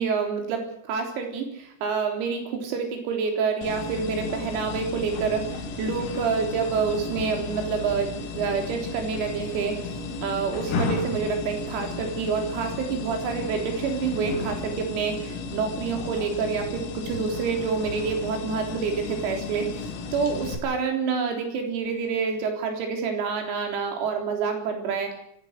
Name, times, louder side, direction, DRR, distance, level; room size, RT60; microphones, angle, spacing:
voice 1, 0.0-9.8 10.2-19.7 20.1-25.2, right 5 dB, 90° right, 3 dB, 6.5 m, -27 dB
sound 1, 3.6-20.6, left 3 dB, 80° left, 5.7 m, -34 dB
25.0 x 16.0 x 6.7 m, 0.74 s
omnidirectional pair, 6.0 m